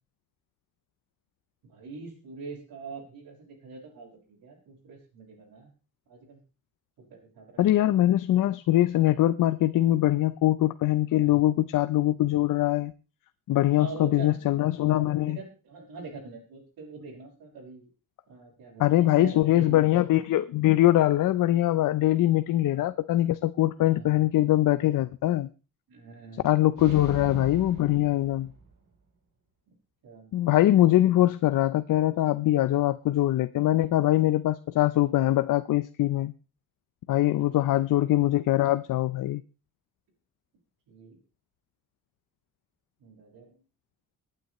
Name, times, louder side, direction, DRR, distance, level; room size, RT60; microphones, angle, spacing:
voice 1, 1.6-5.7 6.1-6.4 7.0-7.7 11.2-11.5 13.6-14.5 15.2-17.9 18.3-19.8 23.9-24.2 25.9-26.5 26.8-27.1 30.0-30.4 37.4-37.7 40.9-41.2 43.0-43.5, right 4 dB, 90° right, 5.8 m, -44 dB
voice 2, 7.6-12.9 13.5-15.4 18.8-25.5 26.4-28.5 30.3-36.3 37.1-39.4, left 14 dB, 65° left, 0.6 m, -23 dB
sound 1, 26.8-29.0, right 3 dB, 65° right, 3.7 m, -41 dB
25.5 x 9.1 x 3.1 m
cardioid pair, 130°, 35 cm